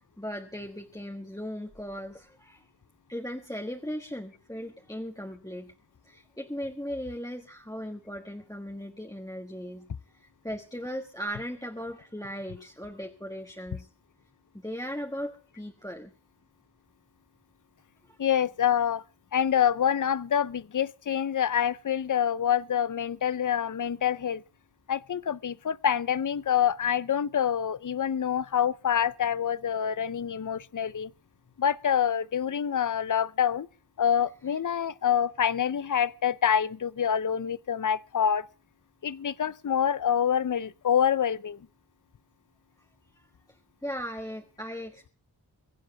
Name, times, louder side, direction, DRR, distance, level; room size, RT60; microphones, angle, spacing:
voice 1, 0.2-2.7 3.1-5.7 6.0-9.9 10.1-13.9 14.5-16.1 18.0-18.2 43.1-45.1, equal, 10° left, 1.4 m, -38 dB
voice 2, 18.2-19.0 19.3-24.4 24.9-31.1 31.6-33.7 34.0-38.4 39.0-41.6, left 8 dB, 50° left, 0.6 m, -26 dB
23.0 x 7.8 x 5.7 m
wide cardioid pair, 75°, 40 cm